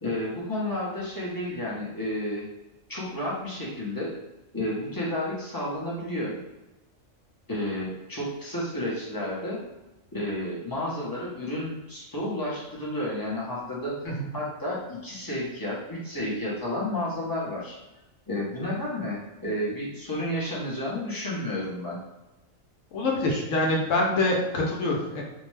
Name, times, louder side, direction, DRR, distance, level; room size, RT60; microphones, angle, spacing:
voice 1, 0.0-2.4 2.9-4.1 4.5-6.4 7.5-9.6 10.1-14.0 14.3-17.8 18.3-22.0, left 1 dB, 25° left, -7 dB, 0.5 m, -31 dB
voice 2, 22.9-25.2, left 2 dB, 70° left, -1 dB, 1.0 m, -25 dB
2.6 x 2.1 x 3.1 m, 1.0 s
omnidirectional pair, 1.4 m